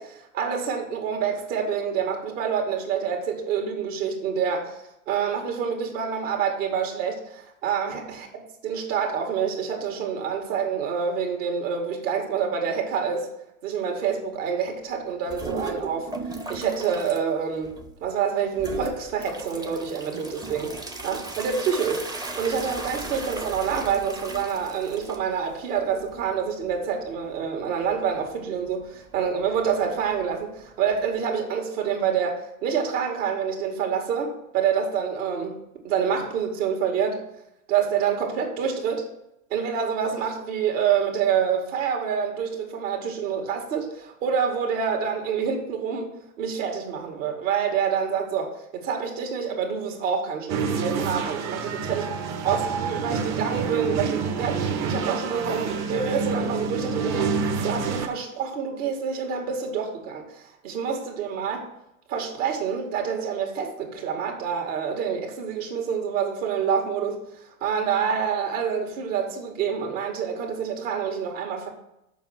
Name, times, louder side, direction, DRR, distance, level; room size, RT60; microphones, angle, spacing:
voice 1, 0.0-4.8 5.1-13.3 13.6-16.1 16.5-20.7 21.0-35.6 35.8-37.2 37.7-39.1 39.5-46.1 46.4-61.7 62.1-71.7, right 7 dB, 60° right, 2 dB, 2.3 m, -27 dB
sound 1, 15.3-17.2 17.6-18.1 18.6-31.2, right 2 dB, 10° right, 0.7 m, -37 dB
sound 2, 50.5-58.1, right 5 dB, 40° right, 1.2 m, -28 dB
7.1 x 5.5 x 6.0 m, 0.84 s
hypercardioid pair, 115°, 42 cm